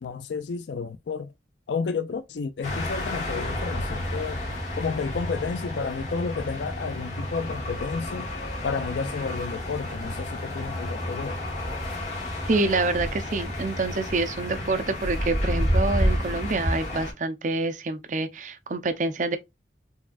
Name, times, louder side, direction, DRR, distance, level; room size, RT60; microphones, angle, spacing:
voice 1, 0.0-1.3 1.7-4.4 4.8-8.3 8.6-11.4, left 5 dB, 75° left, 0.4 m, -31 dB
sound 1, 2.6-17.1, left 1 dB, 40° left, 1.8 m, -30 dB
voice 2, 12.5-19.4, right 3 dB, 45° right, 0.6 m, -27 dB
4.2 x 3.4 x 2.3 m
head